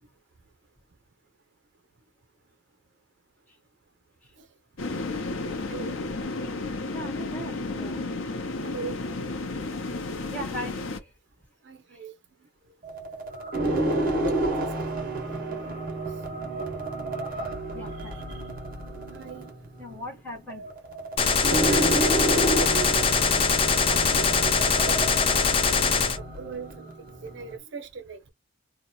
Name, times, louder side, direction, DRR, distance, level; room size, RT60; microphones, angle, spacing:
sound 1, 4.8-11.0, left 3 dB, 75° left, 0.7 m, -32 dB
voice 1, 6.9-8.1 10.3-10.8 17.7-18.2 19.8-20.7 23.9-24.4, equal, 10° left, 1.5 m, -38 dB
voice 2, 8.6-9.0 11.6-12.1 14.8-15.7 18.0-18.4 19.1-19.5 21.6-23.1 23.7-26.9 27.2-28.3, right 4 dB, 60° right, 0.6 m, -39 dB
sound 2, 12.8-27.6, right 2 dB, 45° right, 1.1 m, -30 dB
Gunshot gunfire, 21.2-26.2, left 5 dB, 25° left, 0.4 m, -22 dB
2.8 x 2.3 x 4.1 m
head